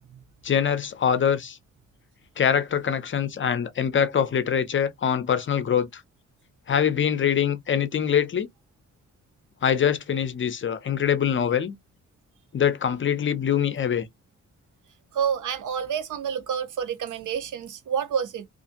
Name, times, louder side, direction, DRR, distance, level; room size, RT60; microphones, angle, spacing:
voice 1, 0.4-1.6 2.4-6.0 6.7-8.5 9.6-11.8 12.5-14.1, left 8 dB, 40° left, 0.5 m, -24 dB
voice 2, 15.1-18.5, right 7 dB, 85° right, 0.7 m, -28 dB
2.7 x 2.5 x 2.5 m
cardioid pair, 105°, 30 cm